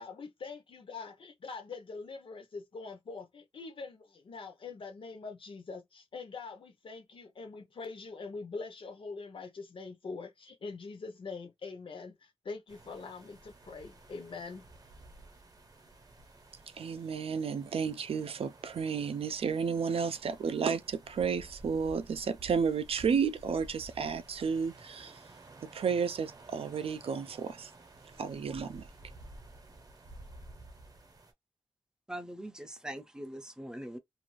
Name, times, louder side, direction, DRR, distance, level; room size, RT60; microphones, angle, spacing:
voice 1, 0.0-14.6, left 4 dB, 55° left, 0.7 m, -44 dB
sound 1, 12.7-31.3, right 2 dB, 35° right, 0.8 m, -53 dB
voice 2, 16.8-25.3 25.6-27.7 28.2-28.9, right 6 dB, 70° right, 0.4 m, -32 dB
voice 3, 32.1-34.0, right 1 dB, 5° right, 0.5 m, -42 dB
2.5 x 2.4 x 3.0 m
wide cardioid pair, 165°, 10 cm